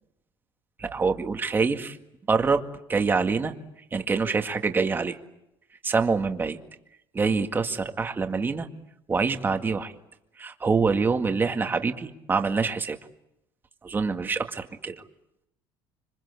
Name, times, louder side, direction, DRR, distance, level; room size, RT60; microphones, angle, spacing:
voice 1, 0.8-2.0 2.3-3.5 3.9-5.2 5.8-6.6 7.1-8.7 9.1-9.9 10.4-13.0 13.8-15.0, right 4 dB, 20° right, 6 dB, 2.0 m, -25 dB
26.5 x 25.5 x 8.4 m, 0.84 s
cardioid pair, 125°, 10 cm